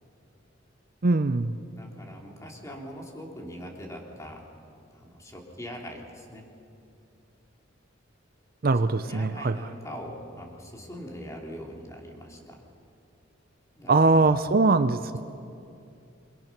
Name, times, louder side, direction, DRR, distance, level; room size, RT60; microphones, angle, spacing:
voice 1, 1.0-1.5 8.6-9.6 13.9-15.2, right 3 dB, 50° right, 11 dB, 0.6 m, -22 dB
voice 2, 1.7-4.4 4.9-6.5 9.1-12.6 13.8-14.4, equal, 15° left, 0 dB, 3.3 m, -42 dB
27.5 x 23.0 x 6.0 m, 2.6 s
head